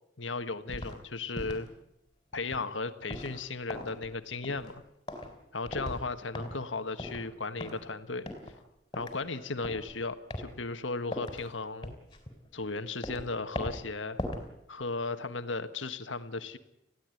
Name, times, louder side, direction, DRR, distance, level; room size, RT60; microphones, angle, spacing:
voice 1, 0.2-1.7 2.3-4.8 5.5-8.3 8.9-11.9 12.5-14.2 14.7-16.6, left 3 dB, 85° left, 9 dB, 1.5 m, -36 dB
sound 1, 0.7-1.0 1.3-1.7 2.3-2.7 3.1-3.4 3.7-4.2 4.4-4.8 5.1-5.4 5.7-6.1 6.3-6.7 7.0-7.3 7.6-7.9 8.3-8.6 8.9-9.2 9.6-9.9 10.3-10.5 11.1-11.5 11.8-12.7 13.0-13.3 13.6-13.9 14.2-14.5 14.8-14.9, left 1 dB, 25° left, 4.0 m, -39 dB
21.5 x 16.0 x 9.2 m, 0.82 s
head